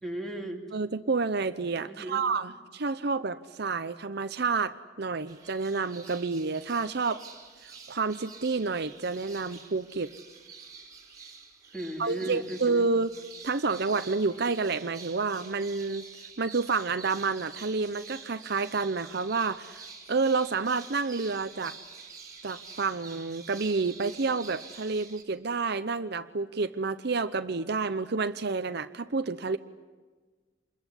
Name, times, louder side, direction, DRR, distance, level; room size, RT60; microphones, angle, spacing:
voice 1, 0.0-0.6 1.9-2.3 11.7-12.8, right 1 dB, ahead, 2 dB, 3.1 m, -36 dB
voice 2, 0.7-7.2 7.6-10.1 12.0-13.1 13.4-16.0 16.4-21.8 22.4-29.6, right 4 dB, 55° right, 10 dB, 0.8 m, -29 dB
sound 1, 5.3-25.2, right 5 dB, 20° right, 3.3 m, -48 dB
27.5 x 21.5 x 9.9 m, 1.4 s
head